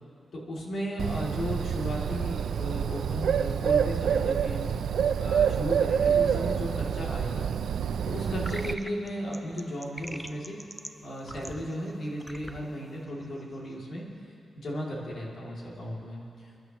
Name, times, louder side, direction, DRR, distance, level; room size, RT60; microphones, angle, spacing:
voice 1, 0.3-4.7 5.2-7.5 8.0-10.6 11.0-14.1 14.5-16.6, equal, 55° left, -4 dB, 2.8 m, -35 dB
Bird, 1.0-8.7, right 8 dB, 80° right, 0.4 m, -27 dB
sound 1, 8.4-13.8, equal, ahead, 0.5 m, -44 dB
28.5 x 11.0 x 3.1 m, 2.5 s
wide cardioid pair, 150°, 0 cm